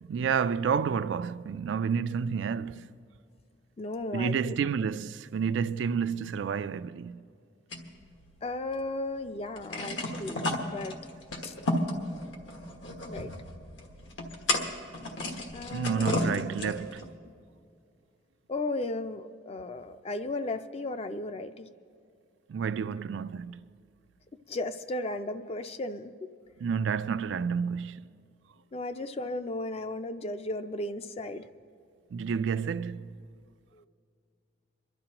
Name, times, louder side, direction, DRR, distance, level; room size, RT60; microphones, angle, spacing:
voice 1, 0.0-2.9 4.1-7.2 15.7-17.0 22.5-23.6 26.6-28.0 32.1-33.2, right 6 dB, 75° right, 0.3 m, -30 dB
voice 2, 3.8-4.6 8.4-11.0 11.4-11.5 13.0-13.3 15.5-16.2 16.6-16.7 18.5-21.7 24.5-26.3 28.7-31.5 33.7-33.9, left 2 dB, 30° left, 0.4 m, -35 dB
sound 1, 7.7-8.9 9.2-9.3 9.5-17.0, left 1 dB, 80° left, 1.4 m, -33 dB
26.0 x 11.5 x 2.9 m
head